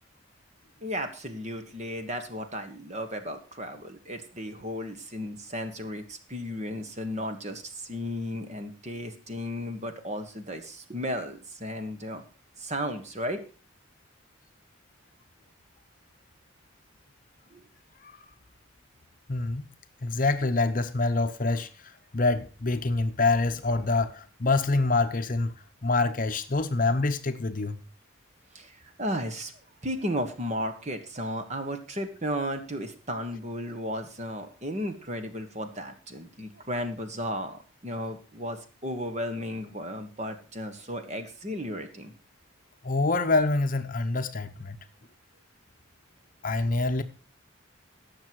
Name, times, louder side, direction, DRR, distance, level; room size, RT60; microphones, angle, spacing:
voice 1, 0.8-12.2 12.6-13.4 17.5-17.6 28.5-29.5 29.8-42.1, equal, 35° right, 1.4 m, -34 dB
voice 2, 19.3-19.7 20.0-25.5 25.8-27.8 42.8-44.8 46.4-47.0, left 3 dB, 40° left, 0.8 m, -26 dB
17.0 x 6.9 x 4.7 m
head